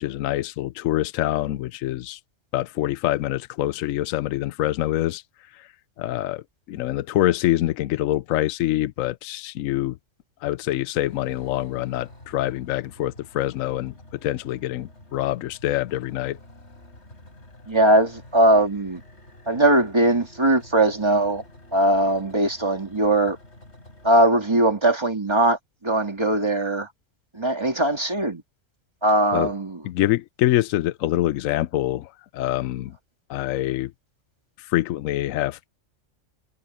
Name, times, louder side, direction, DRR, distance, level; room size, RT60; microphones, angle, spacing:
voice 1, 0.0-2.2 2.5-5.2 5.5-5.7 6.0-10.0 10.4-13.9 14.2-16.4 29.3-29.5 29.8-33.0 33.3-33.9 34.6-35.7, left 14 dB, 80° left, 1.0 m, -25 dB
sound 1, 11.1-24.3, left 1 dB, 55° left, 7.4 m, -48 dB
voice 2, 17.7-19.0 19.5-21.4 21.7-23.4 24.0-26.9 27.3-28.4 29.0-29.8, right 1 dB, 20° right, 2.5 m, -20 dB
omnidirectional pair, 1.4 m